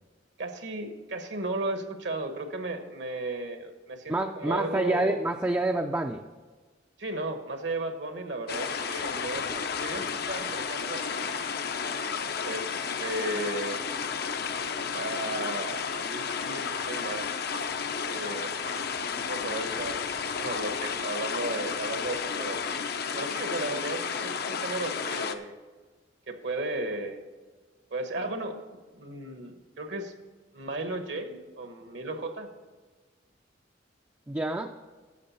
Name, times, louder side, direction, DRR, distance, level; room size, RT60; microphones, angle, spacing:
voice 1, 0.4-5.2 7.0-11.5 12.4-13.9 14.9-17.4 18.0-18.8 19.1-22.6 23.1-25.6 26.3-27.2 27.9-30.1 30.5-32.5, right 2 dB, 70° right, 6 dB, 1.2 m, -35 dB
voice 2, 4.1-6.2 34.3-34.7, right 2 dB, 10° right, 3 dB, 0.4 m, -27 dB
sound 1, 8.5-25.4, left 6 dB, 55° left, 0.6 m, -32 dB
11.5 x 7.6 x 4.2 m, 1.4 s
head